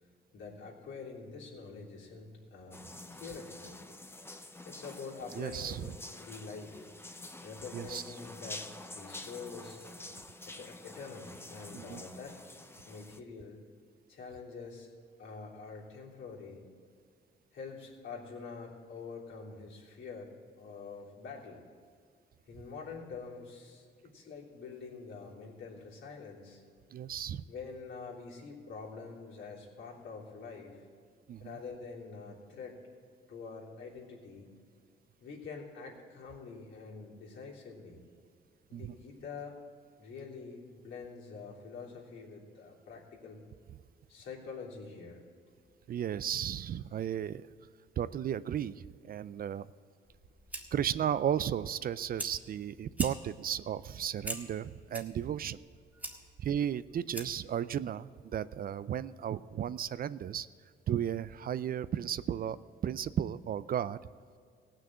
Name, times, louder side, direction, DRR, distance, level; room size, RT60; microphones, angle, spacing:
voice 1, 0.3-3.8 4.6-6.9 7.4-9.8 10.4-12.4 12.8-13.6 14.1-14.9 15.2-16.6 17.5-21.6 22.5-26.6 27.5-30.9 31.4-32.8 33.3-34.5 35.2-38.0 38.7-39.6 40.0-43.4 44.1-45.2, left 4 dB, 75° left, -4 dB, 3.2 m, -46 dB
sound 1, 2.7-13.2, left 2 dB, 10° left, 0.8 m, -48 dB
voice 2, 5.3-5.8 7.7-8.0 11.7-12.0 26.9-27.5 31.3-31.5 38.7-38.9 45.9-47.5 48.0-49.7 50.7-55.6 56.4-60.5 60.9-62.6 62.8-64.0, right 9 dB, 50° right, 16 dB, 0.4 m, -34 dB
Fire, 50.0-57.5, right 1 dB, 10° right, 1.8 m, -45 dB
17.0 x 6.4 x 7.5 m, 2.2 s
cardioid pair, 90°, 20 cm